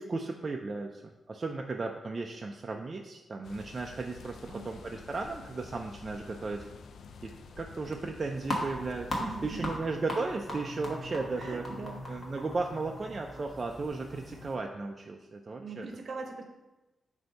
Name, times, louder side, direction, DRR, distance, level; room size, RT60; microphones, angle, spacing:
voice 1, 0.0-4.4 4.6-6.6 7.2-11.6 12.1-15.9, right 3 dB, 30° right, 2 dB, 0.3 m, -35 dB
sound 1, 3.4-9.8, left 4 dB, 70° left, 0.4 m, -49 dB
voice 2, 4.4-5.1 9.1-9.8 11.4-12.0 15.6-16.5, right 3 dB, 55° right, 5 dB, 0.8 m, -42 dB
sound 2, 8.4-14.5, left 1 dB, 30° left, 1.3 m, -39 dB
7.7 x 2.7 x 5.2 m, 1.1 s
wide cardioid pair, 165°, 0 cm